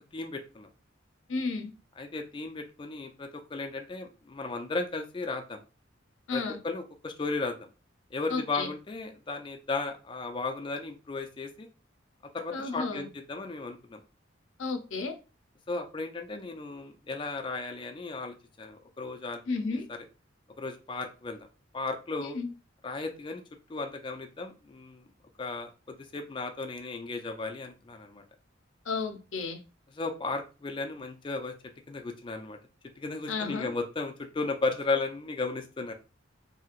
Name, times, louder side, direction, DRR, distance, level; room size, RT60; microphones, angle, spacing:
voice 1, 0.1-0.7 2.0-5.6 6.3-7.5 8.1-11.7 12.3-14.0 15.7-19.4 20.6-21.5 21.7-22.4 22.8-23.4 23.7-25.0 25.4-28.2 30.0-31.5 31.9-32.6 33.0-35.9, left 3 dB, 25° left, 0.4 m, -35 dB
voice 2, 1.3-1.7 6.3-6.6 8.3-8.7 12.5-13.1 14.6-15.2 19.5-19.9 22.2-22.5 28.8-29.6 33.3-33.7, left 4 dB, 85° left, 0.5 m, -33 dB
2.9 x 2.7 x 2.4 m
head